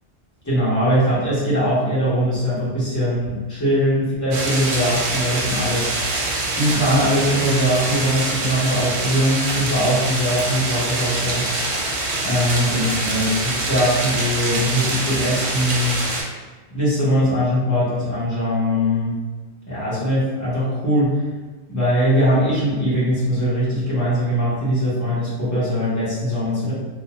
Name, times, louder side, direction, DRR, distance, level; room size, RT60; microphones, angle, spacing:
voice 1, 0.4-6.3 6.5-11.5 12.2-16.0 16.7-19.1 19.7-21.2 21.7-26.7, equal, 15° left, -10 dB, 1.0 m, -21 dB
sound 1, 4.3-16.2, right 2 dB, 85° right, 1.0 m, -25 dB
2.4 x 2.2 x 3.0 m, 1.2 s
omnidirectional pair, 1.1 m